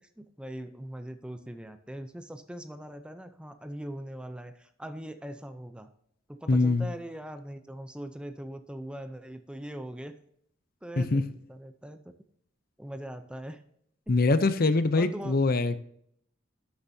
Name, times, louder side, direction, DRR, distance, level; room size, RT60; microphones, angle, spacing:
voice 1, 0.0-5.9 6.3-10.2 10.8-12.1 12.8-13.6 14.1-14.2 14.9-15.3, right 1 dB, 5° right, 9 dB, 0.5 m, -41 dB
voice 2, 6.5-6.9 11.0-11.2 14.1-15.8, left 3 dB, 50° left, 12 dB, 0.6 m, -23 dB
11.5 x 8.1 x 2.7 m, 0.68 s
head